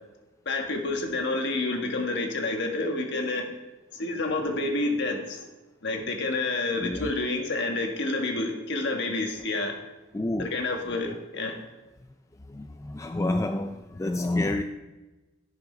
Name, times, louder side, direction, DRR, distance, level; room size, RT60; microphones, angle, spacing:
voice 1, 0.4-3.4 3.9-5.4 5.8-9.7 10.4-11.6, left 2 dB, 55° left, 3 dB, 1.6 m, -29 dB
voice 2, 10.1-10.5 12.5-14.6, left 2 dB, 15° left, 7 dB, 0.3 m, -29 dB
11.5 x 6.6 x 5.1 m, 1.1 s
head